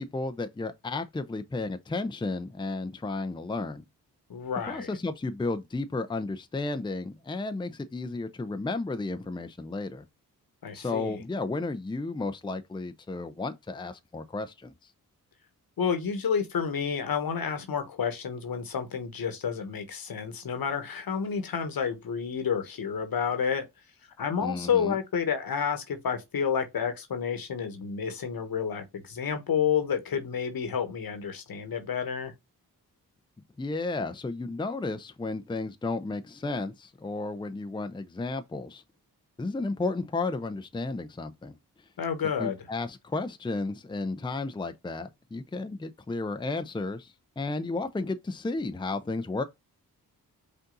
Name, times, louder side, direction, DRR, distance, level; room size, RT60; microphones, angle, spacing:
voice 1, 0.0-3.8 4.7-10.0 10.7-14.7 24.4-25.0 33.6-38.8 39.4-41.6 42.4-49.4, left 3 dB, 10° left, 0.6 m, -33 dB
voice 2, 4.3-4.9 10.6-11.2 15.8-23.6 24.2-32.3 42.0-42.6, left 7 dB, 65° left, 1.3 m, -30 dB
5.3 x 2.6 x 3.8 m
cardioid pair, 50°, 38 cm